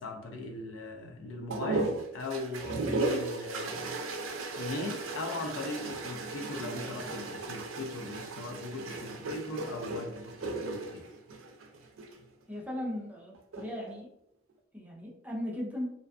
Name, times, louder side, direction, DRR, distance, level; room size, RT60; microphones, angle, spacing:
voice 1, 0.0-4.0 4.6-11.1, left 2 dB, 75° left, 4 dB, 0.4 m, -39 dB
sound 1, 1.5-12.2 13.3-13.9, right 3 dB, 90° right, 0.4 m, -36 dB
voice 2, 12.5-14.1 14.7-15.9, left 1 dB, 10° right, -3 dB, 0.5 m, -37 dB
2.5 x 2.3 x 2.3 m, 0.77 s
head